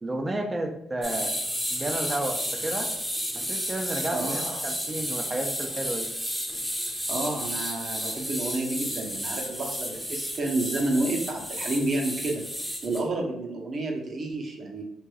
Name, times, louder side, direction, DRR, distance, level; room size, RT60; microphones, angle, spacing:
voice 1, 0.0-1.4 1.7-2.9 3.4-6.1, right 1 dB, 25° right, 4 dB, 0.6 m, -31 dB
sound 1, 1.0-13.0, equal, 5° right, 0.9 m, -32 dB
voice 2, 7.1-12.4 12.8-14.8, right 2 dB, 50° right, 1 dB, 0.9 m, -30 dB
4.6 x 2.6 x 2.3 m, 0.84 s
cardioid pair, 90°, 0 cm